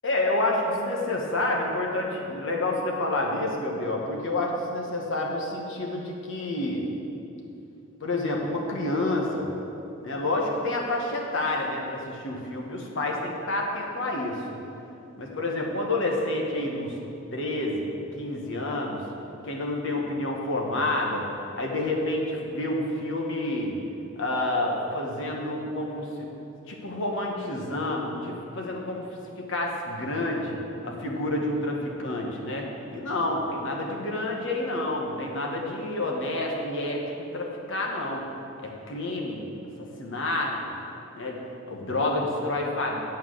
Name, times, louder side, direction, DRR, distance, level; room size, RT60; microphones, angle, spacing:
voice 1, 0.0-6.9 8.0-9.5 10.0-14.4 15.2-16.9 17.3-17.8 18.2-19.0 19.4-21.2 21.5-23.8 24.2-26.3 26.7-29.1 29.4-30.6 30.8-38.2 38.6-39.4 40.0-40.8 41.1-41.4 41.7-43.0, left 2 dB, 55° left, 0 dB, 1.3 m, -29 dB
9.6 x 4.6 x 7.7 m, 2.8 s
head